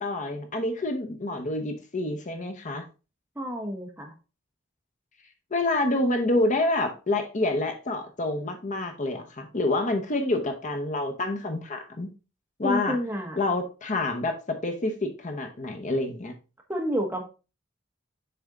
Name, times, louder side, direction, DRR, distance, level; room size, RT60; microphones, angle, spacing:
voice 1, 0.0-2.8 5.5-12.1 12.6-13.0 13.4-16.3, left 2 dB, 40° left, 5 dB, 0.9 m, -27 dB
voice 2, 3.3-4.1 12.6-13.4 16.7-17.3, equal, 10° right, 1 dB, 1.2 m, -29 dB
6.9 x 4.3 x 3.7 m, 0.31 s
head